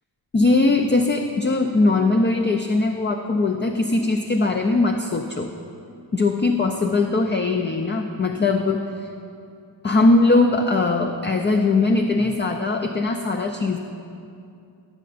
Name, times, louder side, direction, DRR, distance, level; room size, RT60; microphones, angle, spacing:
voice 1, 0.3-5.5 6.1-8.9 9.8-13.8, left 3 dB, 25° left, 4 dB, 0.4 m, -20 dB
16.0 x 6.7 x 2.5 m, 2.5 s
wide cardioid pair, 70°, 44 cm